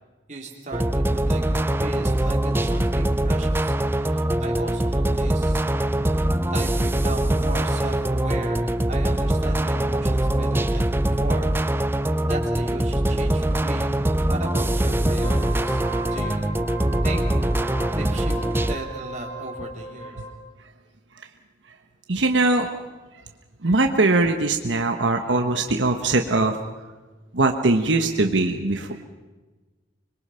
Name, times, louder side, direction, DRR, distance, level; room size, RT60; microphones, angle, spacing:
voice 1, 0.3-5.6 6.1-6.3 6.5-11.5 12.2-13.9 14.3-15.8 16.1-16.5 17.0-17.3 17.6-20.2, right 2 dB, 40° right, 0 dB, 3.6 m, -36 dB
sound 1, 0.7-18.7, right 1 dB, 10° right, 0.6 m, -23 dB
Wind instrument woodwind instrument, 15.1-20.3, right 2 dB, 35° left, 6.2 m, -37 dB
voice 2, 22.1-22.7 23.6-26.6 27.3-29.0, right 2 dB, 90° right, 4 dB, 1.3 m, -21 dB
25.5 x 22.5 x 5.7 m, 1.2 s
head